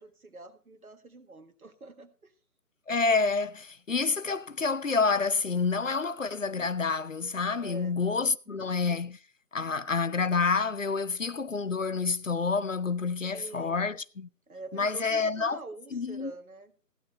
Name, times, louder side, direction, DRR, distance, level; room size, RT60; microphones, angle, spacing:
voice 1, 0.0-2.3 7.6-8.0 8.5-8.6 13.3-13.9 14.5-16.7, right 2 dB, 60° right, 1.8 m, -45 dB
voice 2, 2.9-9.2 9.5-14.3 14.7-15.6 15.9-16.3, left 4 dB, 55° left, 0.6 m, -28 dB
15.5 x 12.0 x 3.2 m
figure-of-eight pair, 155°, 47 cm